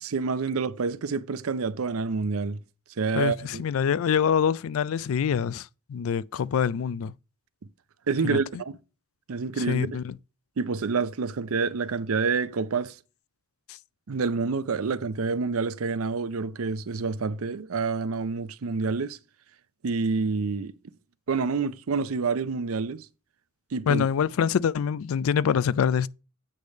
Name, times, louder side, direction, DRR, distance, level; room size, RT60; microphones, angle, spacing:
voice 1, 0.0-2.6 3.0-3.6 8.1-8.8 9.3-9.9 10.6-12.9 14.1-19.2 19.8-20.7 21.3-23.0 23.7-24.1, right 4 dB, 80° right, 0.6 m, -28 dB
voice 2, 3.2-7.1 8.2-8.4 9.6-10.2 13.7-13.8 23.9-26.1, left 7 dB, 75° left, 0.3 m, -25 dB
8.6 x 3.3 x 6.4 m
head